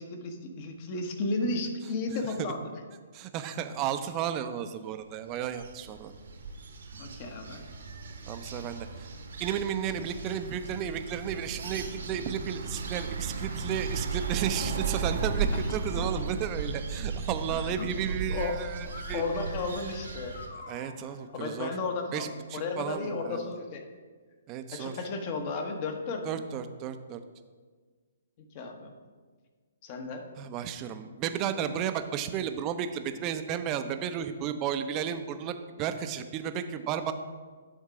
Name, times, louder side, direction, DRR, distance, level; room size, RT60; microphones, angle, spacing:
voice 1, 0.0-2.7 6.9-7.6 15.5-15.6 16.0-16.1 17.6-17.9 18.3-18.6 19.1-20.3 21.0-23.8 24.7-26.2 28.5-28.9 29.8-30.3, left 3 dB, 40° left, 4 dB, 1.0 m, -34 dB
voice 2, 3.1-6.1 8.3-9.1 9.4-19.2 20.7-21.7 22.1-23.5 24.5-24.9 26.2-27.2 30.4-37.1, right 9 dB, 30° right, 9 dB, 0.5 m, -33 dB
sound 1, 5.2-20.5, right 4 dB, 65° right, 1.0 m, -35 dB
sound 2, 18.8-21.4, left 3 dB, 70° left, 0.8 m, -47 dB
10.0 x 3.7 x 4.9 m, 1.5 s
figure-of-eight pair, 125°, 0 cm